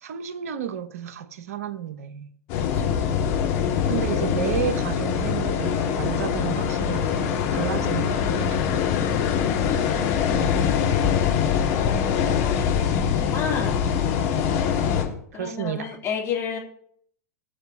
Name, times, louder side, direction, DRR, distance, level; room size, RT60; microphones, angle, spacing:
voice 1, 0.0-2.3 3.9-8.7 10.4-11.2 12.2-12.3 15.3-15.9, right 9 dB, 65° right, 0.9 m, -32 dB
sound 1, 2.5-15.1, left 8 dB, 50° left, 2.8 m, -23 dB
voice 2, 8.9-10.4 12.9-13.8 15.3-16.6, left 6 dB, 30° left, 3.3 m, -33 dB
21.0 x 7.1 x 2.9 m
figure-of-eight pair, 95°, 9 cm